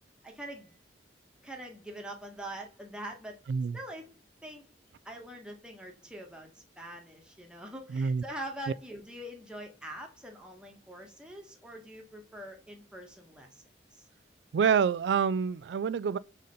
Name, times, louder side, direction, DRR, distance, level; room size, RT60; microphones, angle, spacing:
voice 1, 0.2-0.7 1.4-3.4 3.7-4.1 4.4-4.6 5.0-13.6 13.9-14.1, right 1 dB, 5° right, 1.4 m, -44 dB
voice 2, 3.5-3.8 7.9-8.2 14.5-16.2, right 6 dB, 75° right, 0.3 m, -27 dB
5.0 x 4.1 x 5.3 m
head